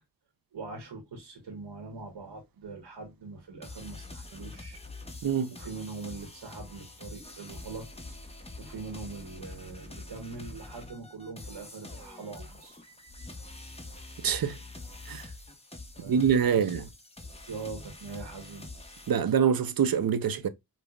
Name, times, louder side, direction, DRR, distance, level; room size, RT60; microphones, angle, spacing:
voice 1, 0.5-4.8 5.5-7.9 8.6-12.8 15.9-16.7 17.5-18.7, right 3 dB, 90° right, 1.0 m, -42 dB
sound 1, 3.6-19.1, left 2 dB, 15° left, 0.8 m, -45 dB
voice 2, 5.2-5.6 14.2-14.6 15.1-15.2 16.1-16.8 19.1-20.5, right 7 dB, 60° right, 0.5 m, -25 dB
5.1 x 2.1 x 2.2 m
cardioid pair, 50°, 40 cm